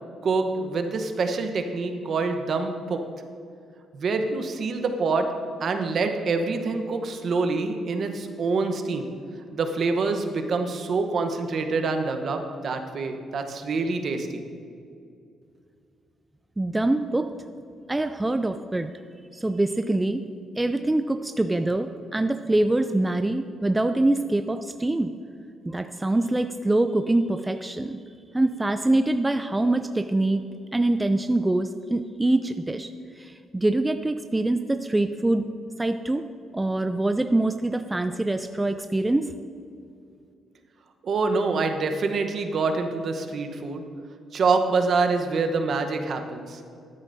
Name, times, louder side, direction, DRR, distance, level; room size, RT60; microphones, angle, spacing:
voice 1, 0.2-3.0 3.9-5.3 5.6-9.1 9.5-14.4 41.0-43.8 44.3-46.6, right 4 dB, 55° right, 6 dB, 0.9 m, -26 dB
voice 2, 16.6-17.3 17.9-18.9 19.3-20.2 20.6-25.1 25.7-28.0 28.3-30.4 30.7-32.9 33.2-35.5 35.8-36.2 36.5-39.3, right 2 dB, 15° right, 9 dB, 0.3 m, -24 dB
13.0 x 9.7 x 2.7 m, 2.4 s
cardioid pair, 90°, 0 cm